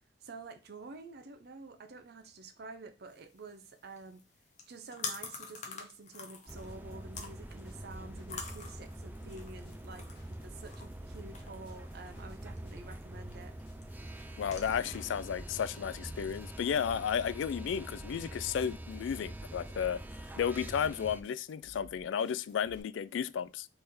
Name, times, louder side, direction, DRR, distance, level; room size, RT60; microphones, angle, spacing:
voice 1, 0.2-4.2 4.7-13.6, right 3 dB, 55° right, 0.6 m, -49 dB
sound 1, 3.1-15.8, left 5 dB, 40° left, 0.9 m, -48 dB
sound 2, 6.5-21.2, right 1 dB, 10° right, 0.3 m, -45 dB
sound 3, 6.7-22.8, equal, 55° left, 1.5 m, -58 dB
voice 2, 14.4-20.0 20.4-23.7, left 7 dB, 75° left, 0.3 m, -33 dB
3.5 x 3.4 x 4.2 m
head